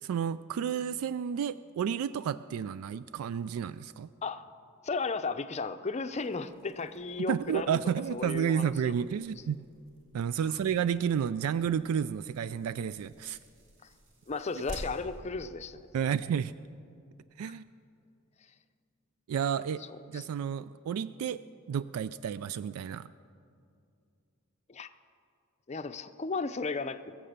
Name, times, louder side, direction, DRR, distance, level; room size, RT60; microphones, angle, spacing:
voice 1, 0.0-4.1 7.2-9.6 10.1-13.4 15.9-16.5 17.4-17.6 19.3-19.8 20.1-21.4 21.7-23.1, right 8 dB, 90° right, 16 dB, 0.3 m, -31 dB
voice 2, 4.8-7.8 8.1-8.9 14.3-15.9 20.1-20.3 24.7-24.9 25.7-27.0, left 4 dB, 30° left, 10 dB, 0.5 m, -34 dB
sound 1, 6.1-16.2, equal, 60° right, 2.1 m, -51 dB
22.0 x 7.5 x 6.7 m, 2.4 s
head